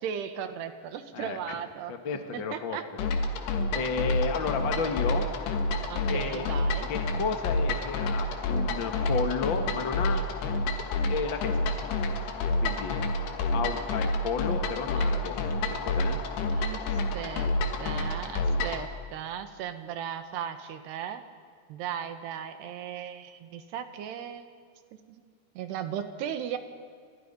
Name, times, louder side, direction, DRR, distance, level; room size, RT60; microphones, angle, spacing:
voice 1, 0.0-1.9 2.3-2.8 5.9-6.9 14.9-15.1 16.5-16.8 17.1-17.5 17.8-21.2 21.7-24.5 25.1-25.2 25.6-26.6, right 8 dB, 90° right, 8 dB, 3.6 m, -36 dB
voice 2, 1.9-2.8 3.7-5.3 6.1-6.5 6.9-10.3 11.1-11.9 12.6-12.9 13.5-15.4 15.7-16.2, left 5 dB, 50° left, 5 dB, 1.4 m, -32 dB
sound 1, 3.0-18.9, left 2 dB, 80° left, 3.9 m, -29 dB
29.5 x 26.0 x 5.5 m, 2.2 s
omnidirectional pair, 4.6 m